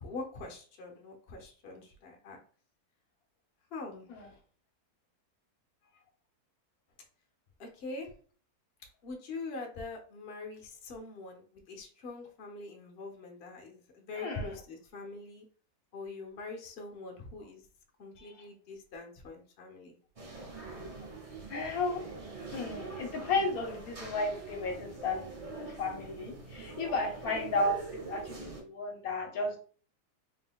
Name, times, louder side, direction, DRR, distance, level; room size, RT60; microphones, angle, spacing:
voice 1, 0.0-2.4 3.7-4.4 7.6-8.1 9.0-15.5 15.9-17.6 18.0-20.0, left 3 dB, 45° left, 2 dB, 0.9 m, -43 dB
voice 2, 14.2-14.6 18.2-18.3 21.5-22.0 22.5-25.5 25.8-29.6, left 2 dB, 70° left, 2 dB, 1.1 m, -33 dB
sound 1, 20.2-28.6, right 3 dB, 45° right, 0.4 m, -44 dB
3.8 x 3.7 x 2.3 m, 0.42 s
omnidirectional pair, 1.7 m